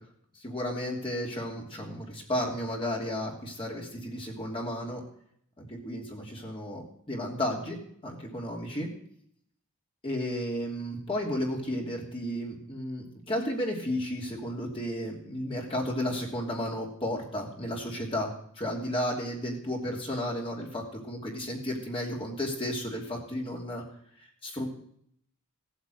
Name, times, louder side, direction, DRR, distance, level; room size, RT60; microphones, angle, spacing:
voice 1, 0.3-5.0 5.6-7.8 8.0-8.9 10.0-18.3 18.6-23.8 24.2-24.7, left 1 dB, 25° left, -1 dB, 2.9 m, -33 dB
17.0 x 8.2 x 7.9 m, 0.67 s
head